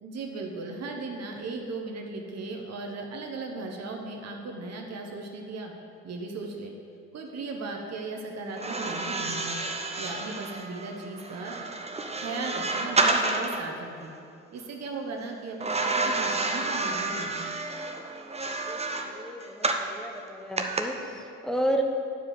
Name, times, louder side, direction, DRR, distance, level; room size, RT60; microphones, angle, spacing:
voice 1, 0.0-5.7 6.0-6.7 7.1-9.6 10.0-11.6 12.2-14.1 14.5-17.5, right 3 dB, 45° right, 1 dB, 1.2 m, -37 dB
sound 1, 8.5-13.7 15.6-19.9 20.6-20.8, right 3 dB, 15° right, 0.8 m, -29 dB
voice 2, 18.1-21.8, right 1 dB, ahead, 2 dB, 1.2 m, -33 dB
9.3 x 4.9 x 6.6 m, 2.6 s
hypercardioid pair, 55°, 36 cm